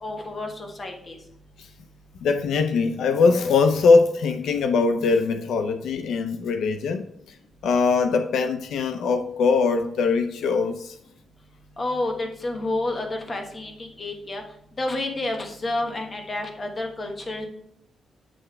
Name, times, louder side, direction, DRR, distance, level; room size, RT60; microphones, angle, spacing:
voice 1, 0.0-1.2 11.8-14.4 14.8-17.5, left 2 dB, 30° left, 1.2 m, -30 dB
voice 2, 2.2-7.0 7.6-11.0, left 4 dB, 90° left, 0.5 m, -21 dB
8.5 x 3.3 x 4.4 m
wide cardioid pair, 140°, 0 cm